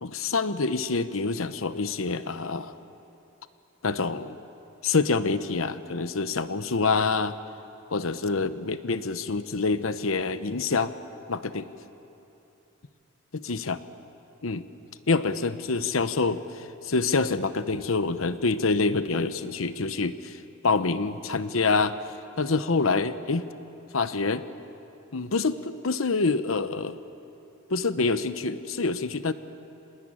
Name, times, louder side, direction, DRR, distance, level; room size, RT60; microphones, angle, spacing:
voice 1, 0.0-2.7 3.8-4.4 4.8-7.3 7.9-10.9 11.3-11.7 13.3-13.8 14.4-14.6 15.1-20.4 20.6-22.0 22.4-23.5 23.9-24.5 25.1-27.0 27.7-29.3, left 4 dB, 90° left, 12 dB, 1.0 m, -26 dB
26.0 x 20.0 x 9.0 m, 2.8 s
head